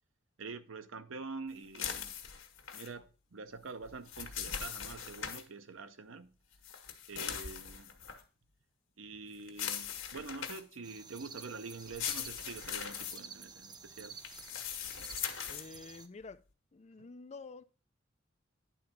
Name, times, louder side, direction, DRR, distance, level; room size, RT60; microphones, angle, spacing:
voice 1, 0.4-2.1 2.7-6.4 7.1-7.9 9.0-14.2 17.0-17.1, right 4 dB, 85° right, 0.8 m, -46 dB
sound 1, 1.7-2.9 3.8-5.4 6.6-8.2 9.5-10.7 11.8-13.2 14.2-15.7, left 8 dB, 80° left, 1.5 m, -40 dB
sound 2, 10.8-16.1, right 5 dB, 20° right, 0.6 m, -51 dB
voice 2, 15.5-16.4 16.7-17.6, left 4 dB, 35° left, 0.5 m, -49 dB
10.0 x 3.9 x 5.8 m
head